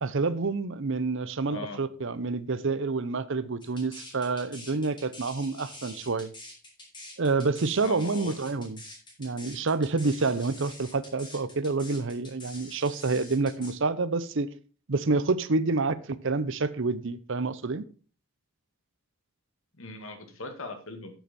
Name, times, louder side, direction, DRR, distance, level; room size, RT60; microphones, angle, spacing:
voice 1, 0.0-6.3 7.2-8.8 9.2-14.5 14.9-17.8, right 3 dB, 60° right, 0.7 m, -28 dB
voice 2, 1.5-1.8 7.8-8.3 19.8-21.1, left 2 dB, 65° left, 1.9 m, -39 dB
sound 1, 3.6-13.7, left 1 dB, 20° left, 3.5 m, -46 dB
9.0 x 8.0 x 4.2 m
head